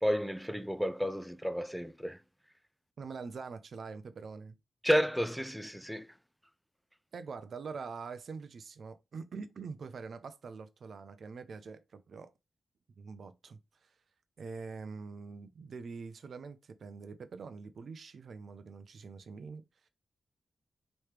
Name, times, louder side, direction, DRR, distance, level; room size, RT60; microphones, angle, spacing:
voice 1, 0.0-2.2 4.8-6.1, equal, ahead, 0.4 m, -31 dB
voice 2, 3.0-4.6 7.1-12.3 13.0-13.9 14.4-19.9, right 5 dB, 70° right, 0.5 m, -44 dB
3.1 x 3.0 x 3.2 m
supercardioid pair, 45°, 0 cm